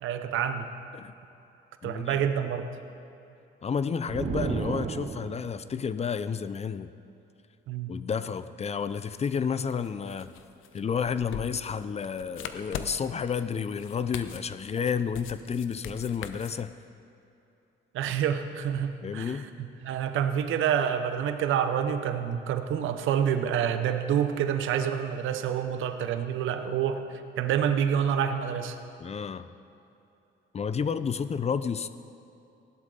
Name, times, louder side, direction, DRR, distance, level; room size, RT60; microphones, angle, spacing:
voice 1, 0.0-0.7 1.8-2.7 7.7-7.9 17.9-27.0 27.4-28.8, right 8 dB, 85° right, 8 dB, 0.8 m, -27 dB
voice 2, 1.8-2.2 3.6-6.9 7.9-10.3 10.7-16.7 19.0-19.5 29.0-29.5 30.5-31.9, left 6 dB, 30° left, 13 dB, 0.5 m, -31 dB
sound 1, 4.1-5.7, right 6 dB, 35° right, 0.5 m, -32 dB
sound 2, 8.8-16.6, left 8 dB, 80° left, 0.7 m, -42 dB
16.5 x 11.5 x 3.9 m, 2.8 s
cardioid pair, 90°, 20 cm